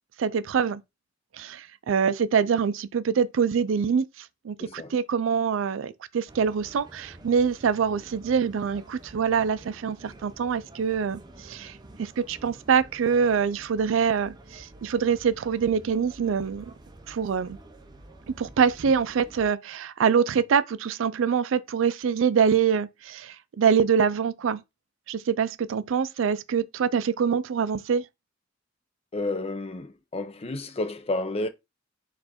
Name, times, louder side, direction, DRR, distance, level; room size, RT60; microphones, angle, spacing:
voice 1, 0.2-0.8 1.3-16.7 17.1-17.6 18.4-24.6 25.1-28.1, right 6 dB, 80° right, 0.4 m, -25 dB
voice 2, 4.6-5.0 29.1-31.5, left 2 dB, 30° left, 0.5 m, -31 dB
sound 1, 6.3-19.5, right 1 dB, 20° right, 0.6 m, -49 dB
4.4 x 2.5 x 4.2 m
head